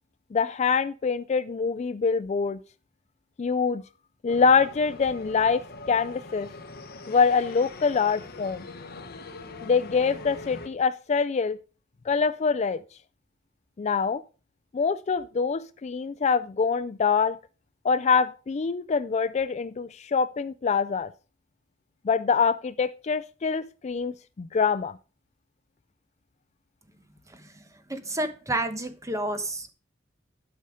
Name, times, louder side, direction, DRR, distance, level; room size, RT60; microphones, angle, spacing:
voice 1, 0.3-2.6 3.4-3.8 4.2-5.6 5.9-6.5 7.1-8.7 9.6-11.6 12.1-12.8 13.8-14.2 14.7-17.4 17.8-21.1 22.0-25.0, left 5 dB, 35° left, 0.3 m, -25 dB
sound 1, 4.3-10.7, left 3 dB, 50° left, 1.0 m, -42 dB
voice 2, 27.9-29.7, right 1 dB, 15° right, 1.1 m, -30 dB
12.0 x 5.6 x 4.9 m
head